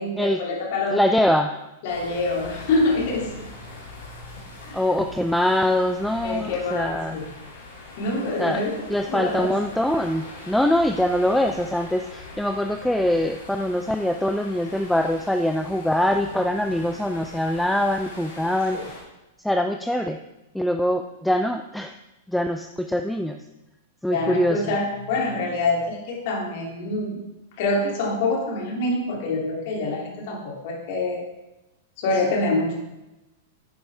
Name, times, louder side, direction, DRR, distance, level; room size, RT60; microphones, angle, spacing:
voice 1, 0.0-1.1 1.8-3.5 4.6-4.8 6.2-7.3 8.0-8.7 9.1-9.5 18.7-18.8 24.1-27.2 27.6-31.2 32.0-32.8, left 2 dB, 55° left, -1 dB, 2.9 m, -26 dB
voice 2, 0.9-1.7 4.7-7.3 8.4-8.6 8.9-19.0 19.4-20.2 20.5-21.9 22.3-23.4 24.0-24.7, left 1 dB, ahead, 6 dB, 0.5 m, -23 dB
sound 1, 1.9-19.0, left 3 dB, 70° left, 3.9 m, -42 dB
10.0 x 9.5 x 3.5 m, 0.97 s
figure-of-eight pair, 100°, 0 cm